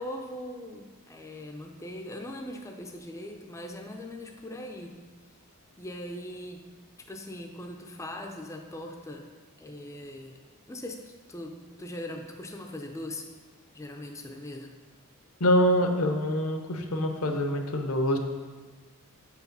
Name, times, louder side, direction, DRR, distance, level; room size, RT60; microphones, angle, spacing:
voice 1, 0.0-5.0 5.8-6.7 7.1-9.3 9.6-10.4 10.7-13.3 13.7-14.7, left 1 dB, 15° left, 3 dB, 0.5 m, -40 dB
voice 2, 15.4-18.2, equal, 75° left, 4 dB, 0.8 m, -25 dB
7.2 x 4.9 x 5.3 m, 1.4 s
head